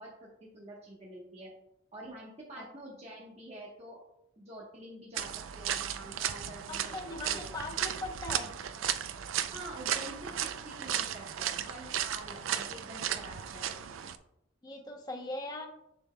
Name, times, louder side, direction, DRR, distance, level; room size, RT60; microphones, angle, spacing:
voice 1, 0.0-1.5 1.9-4.0 4.4-7.0 7.3-7.5 9.5-10.3 10.6-13.8, right 1 dB, 30° right, -4 dB, 1.1 m, -47 dB
sound 1, 5.2-14.2, right 10 dB, 90° right, 0.4 m, -35 dB
voice 2, 6.7-8.5 10.0-10.1 14.6-15.7, left 2 dB, 20° left, 2 dB, 0.8 m, -40 dB
6.9 x 6.9 x 2.2 m, 0.79 s
head